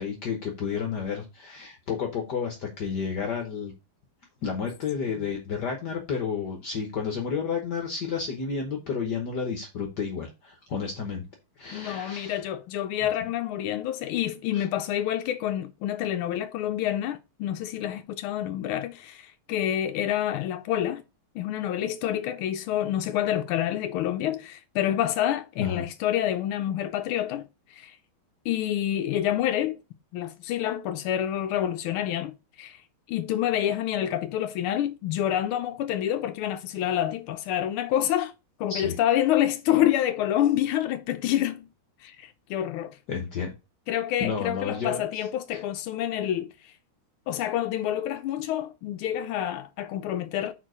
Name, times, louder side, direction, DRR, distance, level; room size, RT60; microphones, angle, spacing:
voice 1, 0.0-3.7 4.4-11.2 11.6-12.4 14.5-14.7 25.6-25.8 38.7-38.9 43.1-43.5 44.2-45.0 45.5-45.6, left 6 dB, 55° left, 1.5 m, -31 dB
voice 2, 11.7-21.0 21.3-27.5 27.7-28.0 28.4-29.8 30.1-32.8 33.1-38.3 38.6-41.7 42.0-43.0 43.9-46.7 47.3-50.5, left 11 dB, 85° left, 1.5 m, -28 dB
4.9 x 4.5 x 6.0 m
omnidirectional pair, 2.4 m